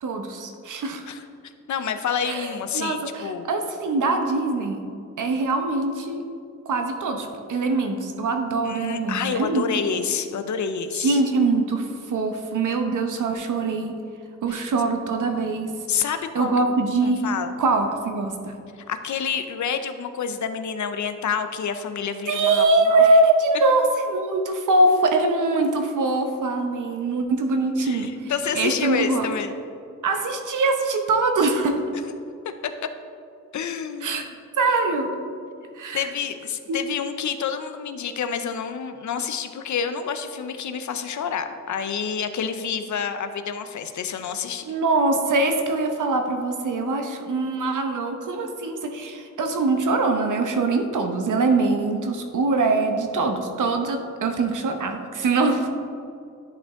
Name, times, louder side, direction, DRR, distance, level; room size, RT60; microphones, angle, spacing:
voice 1, 0.0-1.1 2.3-4.8 5.2-6.2 6.7-9.6 10.9-13.9 14.4-16.1 16.3-17.3 17.6-18.6 22.3-29.3 30.0-31.8 34.0-34.2 34.6-35.1 35.7-36.1 36.7-36.8 44.6-55.7, right 3 dB, 70° right, 5 dB, 0.9 m, -23 dB
voice 2, 1.1-3.5 8.6-11.2 14.5-14.7 15.9-16.7 17.0-17.5 18.9-23.0 27.8-29.5 32.4-32.7 33.5-34.3 35.9-44.6, left 7 dB, 60° left, 9 dB, 0.6 m, -28 dB
10.5 x 5.1 x 3.6 m, 2.4 s
wide cardioid pair, 125°, 32 cm